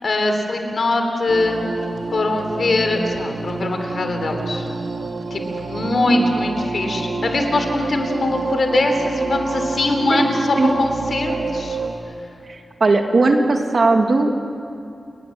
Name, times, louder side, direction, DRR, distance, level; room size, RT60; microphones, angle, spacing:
voice 1, 0.0-1.6 2.1-4.7 5.3-11.8, left 2 dB, 50° left, 5 dB, 3.1 m, -22 dB
sound 1, 1.3-11.9, right 3 dB, 70° right, 2.5 m, -28 dB
voice 2, 10.1-10.7 12.5-14.3, right 3 dB, 45° right, 4 dB, 1.9 m, -18 dB
29.5 x 19.5 x 7.6 m, 2.5 s
wide cardioid pair, 170°, 0 cm